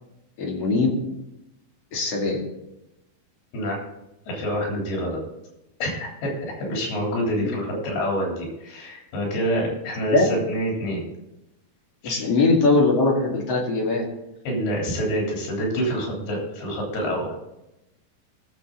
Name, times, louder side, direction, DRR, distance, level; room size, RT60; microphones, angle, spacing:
voice 1, 0.4-0.9 1.9-2.4 7.4-7.5 10.1-10.2 12.0-14.0, left 3 dB, 45° left, -1 dB, 3.0 m, -21 dB
voice 2, 4.3-5.2 5.8-11.0 12.0-12.2 14.4-17.3, equal, 85° left, -2 dB, 5.4 m, -27 dB
19.0 x 7.1 x 3.9 m, 0.91 s
omnidirectional pair, 4.4 m